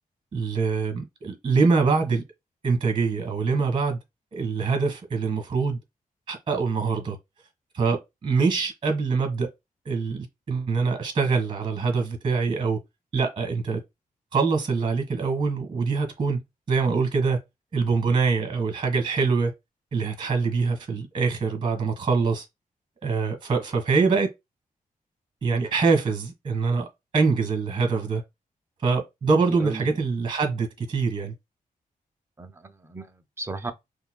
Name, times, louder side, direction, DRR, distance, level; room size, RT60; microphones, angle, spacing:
voice 1, 0.3-2.2 2.6-4.0 4.3-5.8 6.3-7.2 7.7-9.5 9.8-12.8 13.1-13.8 14.3-16.4 16.7-17.4 17.7-19.5 19.9-22.4 23.0-24.3 25.4-26.9 27.1-28.2 28.8-31.3, right 4 dB, 35° right, 1.4 m, -24 dB
voice 2, 29.5-30.0 32.4-33.7, right 3 dB, 15° right, 0.5 m, -36 dB
5.3 x 2.2 x 2.2 m
wide cardioid pair, 140°, 15 cm